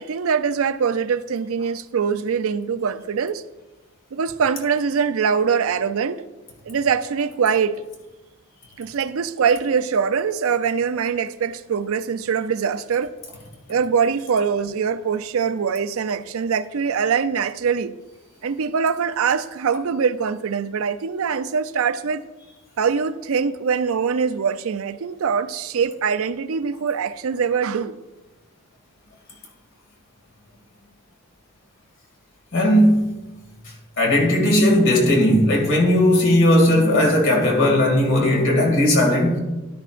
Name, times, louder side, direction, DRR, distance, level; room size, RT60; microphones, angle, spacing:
voice 1, 0.0-3.4 4.1-6.2 6.7-7.8 8.8-13.1 13.7-18.0 18.4-22.2 22.8-28.0, right 6 dB, 70° right, 0.4 m, -23 dB
voice 2, 32.5-33.1 34.0-39.4, left 1 dB, 60° left, 2.4 m, -17 dB
13.0 x 12.0 x 2.5 m
head